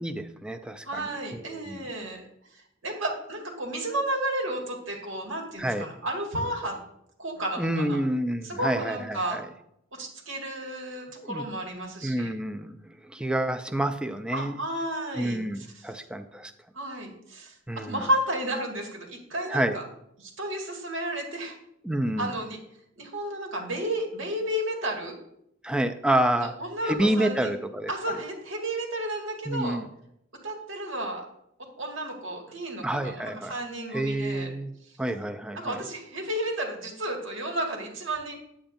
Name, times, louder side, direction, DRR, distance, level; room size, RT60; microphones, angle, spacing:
voice 1, 0.0-1.9 5.6-5.9 7.6-9.5 11.2-11.4 12.0-14.6 15.2-16.5 17.7-18.0 19.5-19.8 21.8-22.3 25.6-26.6 26.8-27.9 29.5-29.9 32.8-33.5 33.9-34.7 35.0-35.8, right 1 dB, 5° right, 7 dB, 0.4 m, -28 dB
voice 2, 0.8-2.2 2.5-6.8 7.2-8.0 8.4-9.4 9.9-12.3 14.3-15.9 16.7-19.8 20.2-21.6 22.2-22.6 23.0-25.1 26.4-27.6 27.9-29.8 30.4-31.3 31.8-34.5 35.5-38.4, right 1 dB, 80° right, 1 dB, 1.9 m, -32 dB
8.8 x 8.5 x 2.6 m, 0.74 s
head